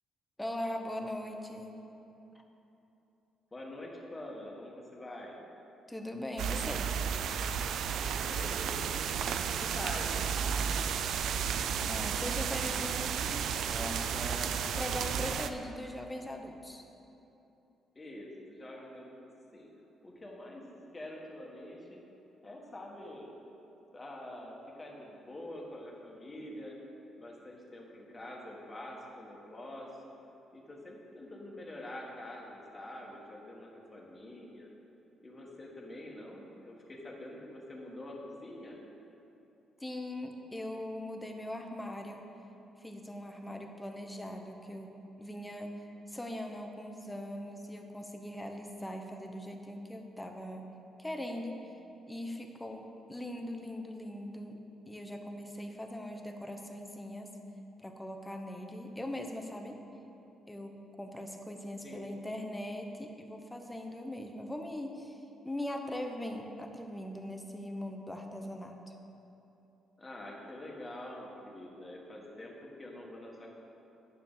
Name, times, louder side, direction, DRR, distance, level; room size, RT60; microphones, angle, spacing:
voice 1, 0.4-1.8 2.3-2.4 5.9-6.9 11.9-16.8 39.8-42.3 42.8-44.9 45.2-50.7 51.0-51.6 52.1-54.6 54.9-57.3 57.8-59.8 60.5-65.2 65.4-68.9, left 1 dB, 10° left, 3 dB, 0.8 m, -40 dB
voice 2, 3.5-5.4 8.2-10.3 17.9-19.2 19.5-19.7 20.0-20.6 20.9-22.0 22.4-23.3 23.9-26.8 27.2-30.1 30.5-34.7 35.2-38.9 61.8-62.1 70.0-73.5, left 1 dB, 25° left, -2 dB, 1.4 m, -45 dB
sound 1, 6.4-15.5, right 7 dB, 75° right, 0.3 m, -33 dB
9.3 x 6.7 x 3.9 m, 3.0 s
cardioid pair, 90°, 0 cm